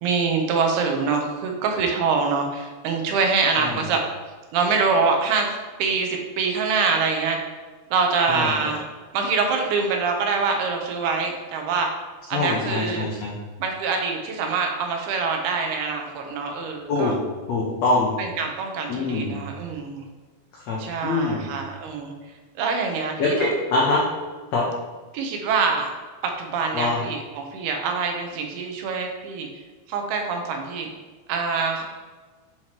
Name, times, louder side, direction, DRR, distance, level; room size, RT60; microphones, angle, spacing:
voice 1, 0.0-4.0 4.5-5.5 5.8-7.4 7.9-8.8 9.1-11.9 12.3-13.1 13.6-17.1 18.2-20.0 20.8-22.1 22.6-23.5 25.1-25.9 26.4-29.5 29.9-30.9 31.3-31.8, right 4 dB, 90° right, 3 dB, 2.9 m, -24 dB
voice 2, 12.3-13.3 16.9-17.1 17.5-18.1 18.9-19.4 20.7-21.5 23.2-24.0 24.5-24.6 26.7-27.0, left 3 dB, 85° left, -3 dB, 1.4 m, -23 dB
7.6 x 5.9 x 3.0 m, 1.3 s
omnidirectional pair, 4.4 m